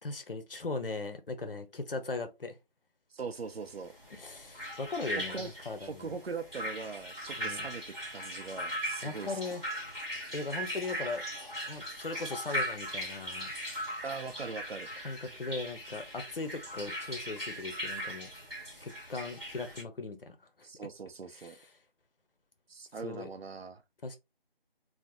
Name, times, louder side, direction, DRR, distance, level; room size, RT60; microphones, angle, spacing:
voice 1, 0.0-2.5 4.1-6.1 7.4-7.7 9.0-9.6 10.3-11.2 11.7-13.5 15.0-18.3 18.8-20.4 21.4-21.6 23.0-23.3 24.0-24.2, left 3 dB, 65° left, 0.8 m, -38 dB
voice 2, 3.1-3.9 5.2-5.5 5.8-9.4 14.0-14.9 20.6-21.6 22.7-23.8, right 4 dB, 90° right, 0.7 m, -41 dB
sound 1, 3.9-19.8, equal, ahead, 0.9 m, -39 dB
3.2 x 2.0 x 2.9 m
figure-of-eight pair, 170°, 30 cm